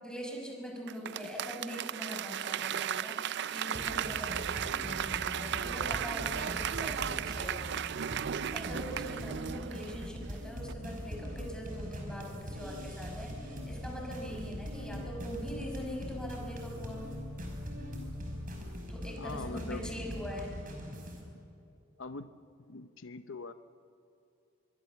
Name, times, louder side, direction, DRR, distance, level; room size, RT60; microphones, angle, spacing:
voice 1, 0.0-7.7 8.5-17.0 18.9-20.5, equal, 5° left, -1 dB, 5.9 m, -42 dB
Applause / Crowd, 0.9-10.3 10.7-10.8, right 9 dB, 60° right, 0.5 m, -35 dB
sound 1, 3.8-21.2, equal, 45° right, 5.2 m, -42 dB
sound 2, 9.0-18.6, left 2 dB, 20° right, 5.2 m, -49 dB
voice 2, 19.2-19.9 22.0-22.3 22.7-23.5, left 3 dB, 75° left, 10 dB, 0.8 m, -42 dB
25.0 x 23.0 x 7.2 m, 2.7 s
head